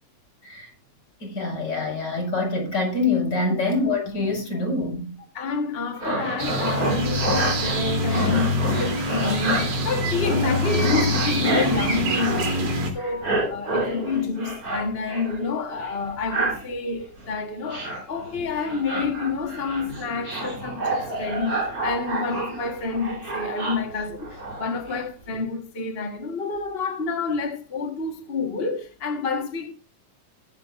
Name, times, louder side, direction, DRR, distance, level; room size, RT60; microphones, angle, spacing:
voice 1, 1.2-5.1, left 3 dB, 35° left, 5.9 m, -25 dB
voice 2, 5.3-29.7, left 4 dB, 65° left, 0.5 m, -28 dB
sound 1, 6.0-12.7 13.0-15.4 15.7-16.7 17.2-17.3 17.7-25.0 25.3-25.4, right 2 dB, 30° right, 3.7 m, -29 dB
sound 2, 6.4-12.9, equal, 80° right, 4.4 m, -25 dB
20.5 x 7.9 x 2.4 m
omnidirectional pair, 3.5 m